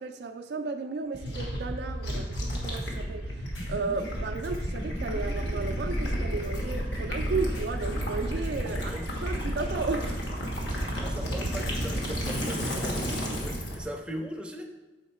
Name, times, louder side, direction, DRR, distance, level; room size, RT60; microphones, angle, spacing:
voice 1, 0.0-3.3 3.7-10.3, right 4 dB, 65° right, 0.4 m, -34 dB
sound 1, 1.1-10.0, equal, 50° left, 0.9 m, -40 dB
Gurgling / Liquid, 1.2-13.8, equal, 70° left, 1.3 m, -32 dB
sound 2, 3.5-3.7 4.1-4.2 4.4-4.6 6.4-7.2 7.5-7.7 8.0-8.6 10.4-11.2, left 1 dB, 85° left, 1.4 m, -49 dB
voice 2, 8.6-9.1 10.8-14.7, equal, 5° right, 0.5 m, -39 dB
6.4 x 3.6 x 4.2 m
head